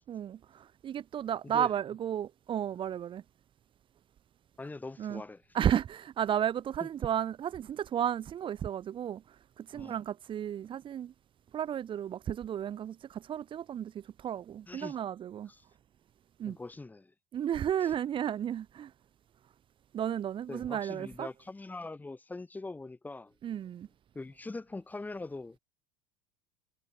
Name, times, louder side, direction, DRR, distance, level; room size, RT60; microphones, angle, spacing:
voice 1, 0.1-3.2 5.0-5.2 5.5-11.1 11.5-15.5 16.4-16.6 17.3-18.9 19.9-21.3 23.4-23.9, right 10 dB, 40° right, 3.8 m, -33 dB
voice 2, 4.6-5.4 6.8-6.9 9.7-10.0 14.7-15.0 15.5-15.6 16.5-17.1 17.8-17.9 20.5-23.6 24.1-25.6, left 3 dB, 10° left, 7.6 m, -42 dB
hypercardioid pair, 95°, 14 cm